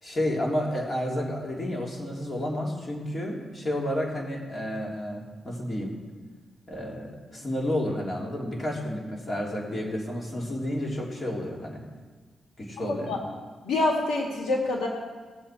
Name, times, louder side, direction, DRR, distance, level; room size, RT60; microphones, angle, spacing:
voice 1, 0.0-5.9 6.7-11.8 12.6-13.2, left 1 dB, 35° left, -2 dB, 3.3 m, -31 dB
voice 2, 12.8-13.2 13.6-14.9, left 2 dB, 85° left, 0 dB, 1.8 m, -26 dB
19.0 x 7.6 x 4.5 m, 1.4 s
cardioid pair, 75°, 0 cm